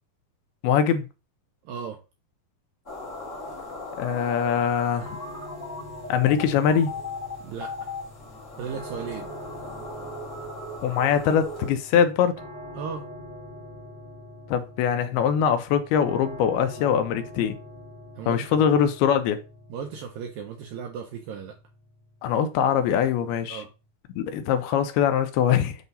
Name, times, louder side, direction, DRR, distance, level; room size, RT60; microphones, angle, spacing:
voice 1, 0.6-1.0 3.9-5.2 6.1-6.9 10.8-12.4 14.5-17.6 18.3-19.4 22.2-23.6 24.2-25.8, left 8 dB, 85° left, 2.4 m, -22 dB
voice 2, 1.7-2.0 7.4-7.9 8.6-9.3 12.8-13.1 18.2-18.7 19.7-21.6 23.5-23.7, right 7 dB, 80° right, 2.0 m, -36 dB
sound 1, 2.9-11.7, left 2 dB, 35° left, 1.2 m, -38 dB
sound 2, 5.0-23.9, left 1 dB, 25° right, 1.3 m, -44 dB
8.1 x 2.8 x 5.3 m
omnidirectional pair, 4.8 m